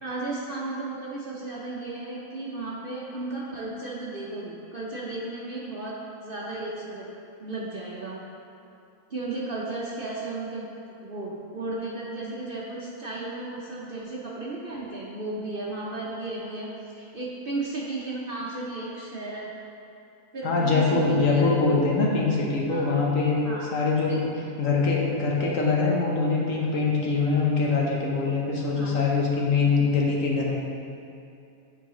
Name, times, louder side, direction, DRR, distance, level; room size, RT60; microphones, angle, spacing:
voice 1, 0.0-6.0 6.2-7.1 7.4-8.2 9.1-10.7 11.0-19.5 20.3-21.5 22.7-22.9 23.4-23.7 24.1-24.2 28.7-28.9, right 2 dB, 50° right, -5 dB, 0.7 m, -34 dB
voice 2, 20.4-24.2 24.6-30.6, left 4 dB, 65° left, -3 dB, 1.2 m, -23 dB
8.9 x 4.7 x 3.0 m, 2.6 s
omnidirectional pair, 1.6 m